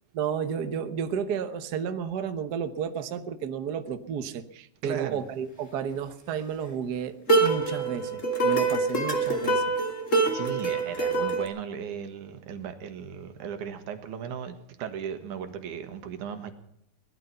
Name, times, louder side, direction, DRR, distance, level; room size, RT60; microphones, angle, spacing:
voice 1, 0.1-9.6, right 7 dB, 65° right, 1.0 m, -32 dB
voice 2, 4.8-5.2 10.3-16.5, right 8 dB, 90° right, 3.0 m, -36 dB
sound 1, 7.3-11.5, right 3 dB, 25° left, 2.2 m, -25 dB
18.5 x 12.5 x 5.7 m
omnidirectional pair, 3.4 m